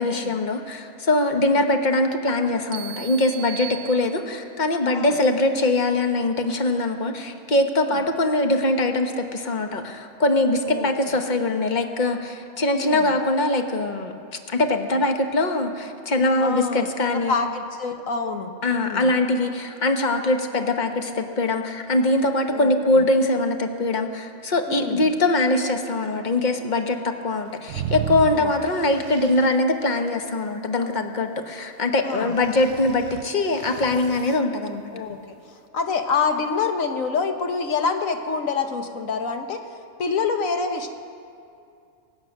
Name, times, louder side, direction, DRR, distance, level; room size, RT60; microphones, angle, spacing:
voice 1, 0.0-14.1 14.5-17.3 18.6-34.9, left 2 dB, 35° left, 5 dB, 1.1 m, -22 dB
sound 1, 2.7-4.6, right 14 dB, 90° right, 1.0 m, -38 dB
voice 2, 12.7-13.1 16.4-19.1 22.5-23.0 24.7-25.0 28.3-28.5 32.0-32.3 34.9-35.2 35.7-39.6 40.0-40.9, left 5 dB, 80° left, 6 dB, 1.5 m, -27 dB
sound 2, 27.7-29.6 32.4-34.4, right 10 dB, 65° right, 0.8 m, -33 dB
23.0 x 8.6 x 6.5 m, 2.4 s
omnidirectional pair, 1.4 m